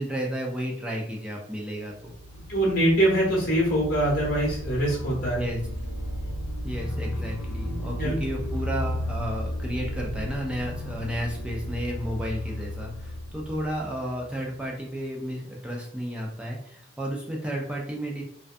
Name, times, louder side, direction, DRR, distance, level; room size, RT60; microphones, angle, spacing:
voice 1, 0.0-2.1 5.4-5.6 6.6-18.2, equal, 5° right, -2 dB, 0.4 m, -32 dB
sound 1, 1.8-14.6, left 1 dB, 80° left, 0.4 m, -34 dB
voice 2, 2.5-5.4 7.6-8.2, right 1 dB, 50° left, -5 dB, 0.9 m, -24 dB
2.5 x 2.2 x 2.5 m, 0.69 s
head